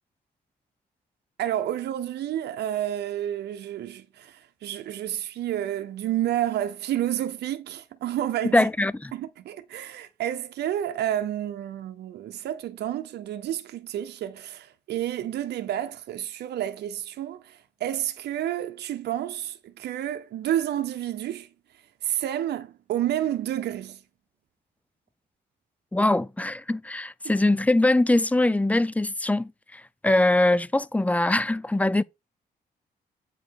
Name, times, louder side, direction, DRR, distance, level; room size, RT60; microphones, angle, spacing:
voice 1, 1.4-8.7 9.1-21.5 22.0-24.0, right 11 dB, 90° right, 0.8 m, -30 dB
voice 2, 8.5-9.1 25.9-32.0, left 2 dB, 10° left, 0.4 m, -22 dB
8.3 x 4.4 x 4.7 m
cardioid pair, 75°, 17 cm